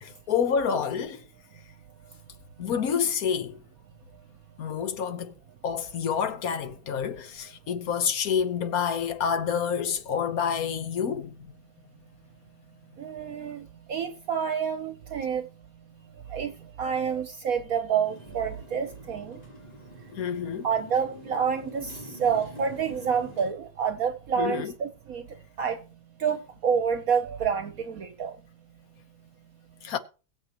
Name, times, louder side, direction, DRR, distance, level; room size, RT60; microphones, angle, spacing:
voice 1, 0.0-1.2 2.6-3.6 4.6-5.3 5.6-11.5 20.1-20.7 24.4-24.7 29.8-30.0, left 7 dB, 60° left, 1.4 m, -28 dB
voice 2, 13.0-15.5 16.3-19.4 20.6-25.3 25.6-25.8 26.2-28.4, right 7 dB, 60° right, 1.2 m, -28 dB
Motorcycle, 18.0-23.5, left 1 dB, 20° left, 3.5 m, -46 dB
22.0 x 7.6 x 2.9 m
omnidirectional pair, 1.8 m